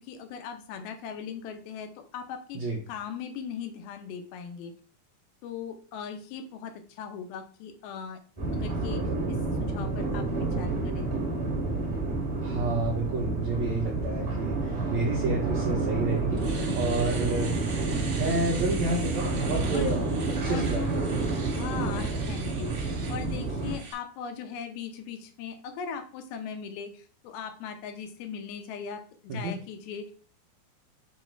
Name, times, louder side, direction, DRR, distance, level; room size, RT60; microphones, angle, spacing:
voice 1, 0.0-2.6 2.9-4.7 5.4-8.2 8.5-11.2 19.7-19.9 20.5-21.1 21.5-30.1, left 7 dB, 80° left, 6 dB, 2.6 m, -39 dB
sound 1, 8.4-23.8, right 3 dB, 15° right, 1.3 m, -29 dB
voice 2, 12.4-17.5 18.1-20.0 20.3-21.0 29.3-29.6, right 2 dB, 75° right, -2 dB, 1.6 m, -30 dB
Domestic sounds home sounds, 15.7-15.8 16.2-23.9, right 4 dB, 60° right, 1.3 m, -43 dB
7.0 x 3.1 x 4.5 m, 0.42 s
omnidirectional pair, 4.5 m